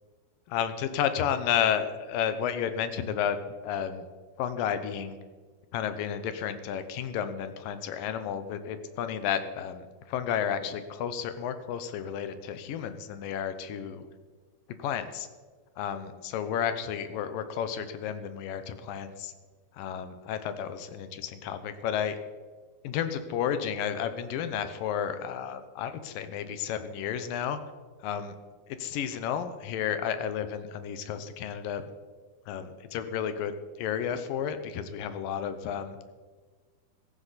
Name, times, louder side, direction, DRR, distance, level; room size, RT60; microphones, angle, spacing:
voice 1, 0.5-4.1 4.4-5.2 5.7-14.0 14.8-15.3 15.8-19.3 19.7-22.2 22.8-27.6 28.0-28.4 28.7-31.8 32.5-36.0, left 8 dB, 75° left, 10 dB, 2.5 m, -32 dB
16.0 x 14.5 x 4.2 m, 1.5 s
omnidirectional pair, 4.4 m